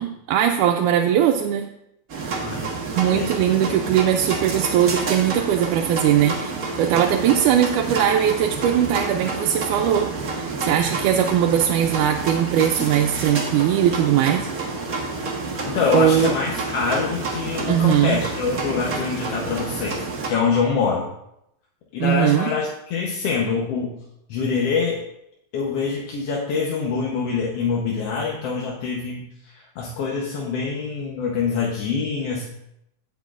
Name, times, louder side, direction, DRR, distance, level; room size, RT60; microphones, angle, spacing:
voice 1, 0.0-1.7 2.9-14.4 15.9-16.3 17.7-18.2 22.0-22.5, right 10 dB, 90° right, 2 dB, 2.1 m, -20 dB
sound 1, 2.1-20.3, right 3 dB, 55° right, 1.0 m, -29 dB
voice 2, 2.4-2.8 3.1-3.3 15.7-20.0 20.3-21.1 21.9-23.9 24.3-25.0 25.5-32.4, left 5 dB, 65° left, -3 dB, 1.8 m, -25 dB
17.5 x 6.3 x 2.5 m, 0.79 s
omnidirectional pair, 3.5 m